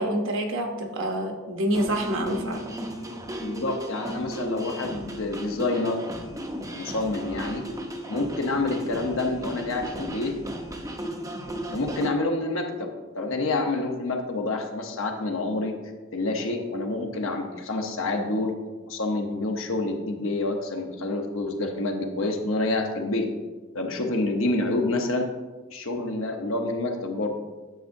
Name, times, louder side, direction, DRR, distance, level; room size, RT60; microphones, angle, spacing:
voice 1, 0.0-2.7, right 1 dB, 65° right, 3 dB, 0.9 m, -27 dB
sound 1, 1.7-12.1, equal, 15° right, 0.6 m, -35 dB
voice 2, 3.4-6.0 6.7-7.6 8.1-10.4 11.7-15.7 16.1-18.5 18.9-23.3 23.7-25.3 25.7-27.3, left 2 dB, 65° left, 3 dB, 1.0 m, -28 dB
9.2 x 7.1 x 2.6 m, 1.3 s
head